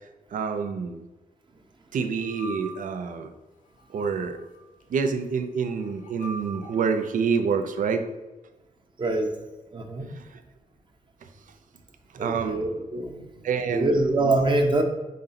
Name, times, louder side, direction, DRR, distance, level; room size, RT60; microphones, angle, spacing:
voice 1, 0.3-1.0 1.9-3.3 3.9-4.4 4.9-8.0 12.2-12.6 13.4-13.9, right 5 dB, 75° right, 8 dB, 0.6 m, -27 dB
sound 1, 2.2-3.1 3.8-4.6 5.6-7.1, right 1 dB, 80° left, 0.9 m, -42 dB
voice 2, 9.0-9.3 9.7-10.1 12.2-13.2 13.7-14.8, right 2 dB, 35° right, 3 dB, 0.9 m, -24 dB
5.2 x 3.9 x 5.8 m, 1.1 s
wide cardioid pair, 135°, 14 cm